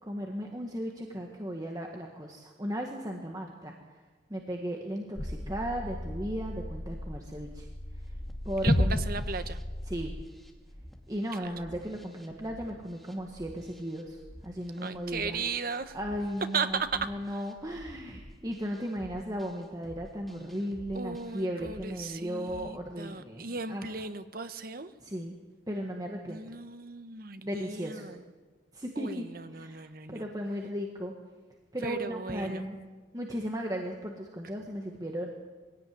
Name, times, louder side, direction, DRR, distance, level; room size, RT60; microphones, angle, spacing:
voice 1, 0.0-3.7 4.3-7.7 8.4-9.0 9.9-10.1 11.1-14.2 14.4-15.4 15.9-23.9 25.0-25.3 25.7-26.4 27.4-28.1 28.7-31.1 31.7-32.8 33.1-35.3, equal, 20° right, 1 dB, 1.7 m, -36 dB
sound 1, 5.2-10.2, left 1 dB, 25° left, 1.1 m, -32 dB
sound 2, 7.9-22.7, equal, ahead, 2.5 m, -52 dB
voice 2, 8.6-9.6 11.4-11.5 14.8-16.0 16.5-17.4 20.9-24.9 26.3-28.2 29.0-30.3 31.8-32.6, right 4 dB, 50° right, 10 dB, 1.2 m, -36 dB
22.5 x 16.5 x 9.5 m, 1.4 s
head